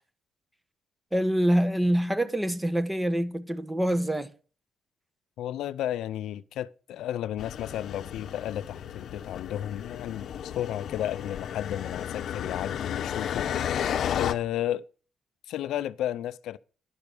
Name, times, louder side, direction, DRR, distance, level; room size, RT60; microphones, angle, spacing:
voice 1, 1.1-4.3, equal, 10° right, 1.1 m, -25 dB
voice 2, 5.4-13.5 14.1-14.8 15.5-16.6, left 12 dB, 85° left, 0.4 m, -33 dB
sound 1, 7.4-14.3, left 9 dB, 65° left, 0.8 m, -33 dB
10.5 x 6.0 x 6.8 m
cardioid pair, 90°, 0 cm